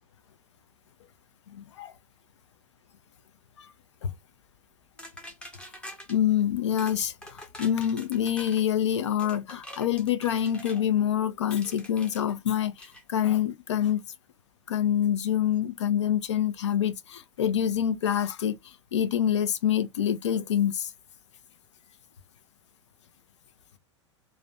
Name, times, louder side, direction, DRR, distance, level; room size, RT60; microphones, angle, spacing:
voice 1, 1.5-1.9 3.6-3.7 4.0-4.1 6.1-14.0 14.7-20.9, left 10 dB, 70° left, 0.4 m, -26 dB
sound 1, 5.0-6.2 6.8-7.0 7.2-8.6 9.2-10.8 11.5-12.2 12.8-13.0, equal, 5° left, 0.7 m, -45 dB
2.4 x 2.1 x 2.5 m
figure-of-eight pair, 90°, 16 cm